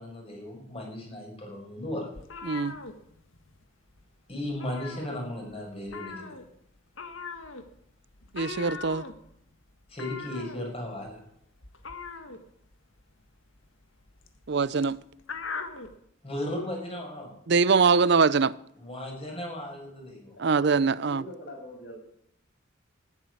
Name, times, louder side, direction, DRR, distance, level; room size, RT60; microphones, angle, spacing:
voice 1, 0.0-2.1 4.3-6.4 9.9-11.2 16.2-17.3 18.8-20.4, left 1 dB, 30° left, 6.3 m, -36 dB
sound 1, 2.1-3.6 3.9-4.1 4.4-5.5 5.9-16.0, left 4 dB, 80° left, 1.7 m, -41 dB
voice 2, 2.5-2.8 8.3-9.0 14.5-15.0 17.5-18.6 20.4-21.2, right 5 dB, 55° right, 0.5 m, -23 dB
voice 3, 20.9-22.0, left 1 dB, 55° left, 7.7 m, -43 dB
13.0 x 11.0 x 9.7 m
head